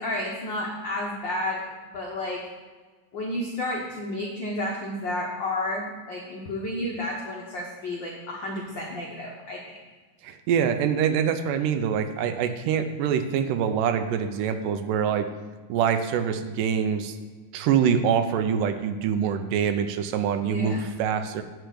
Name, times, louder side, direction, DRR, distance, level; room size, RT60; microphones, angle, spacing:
voice 1, 0.0-1.6 1.9-2.5 3.1-9.7 20.4-20.9, left 1 dB, 80° left, -3 dB, 1.0 m, -31 dB
voice 2, 10.2-15.3 15.7-17.2 17.5-21.4, right 7 dB, 80° right, 8 dB, 2.2 m, -25 dB
9.9 x 4.6 x 7.8 m, 1.4 s
omnidirectional pair, 3.9 m